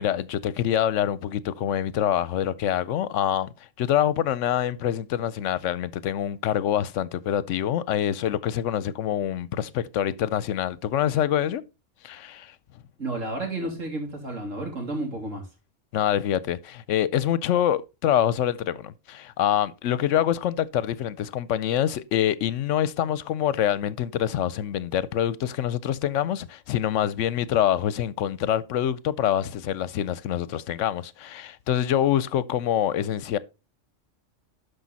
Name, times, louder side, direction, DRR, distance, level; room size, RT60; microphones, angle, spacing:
voice 1, 0.0-3.5 3.8-11.6 12.0-12.5 15.9-33.4, left 10 dB, 75° left, 0.9 m, -25 dB
voice 2, 13.0-15.4, right 2 dB, 85° right, 3.5 m, -31 dB
12.0 x 5.3 x 4.0 m
omnidirectional pair, 1.3 m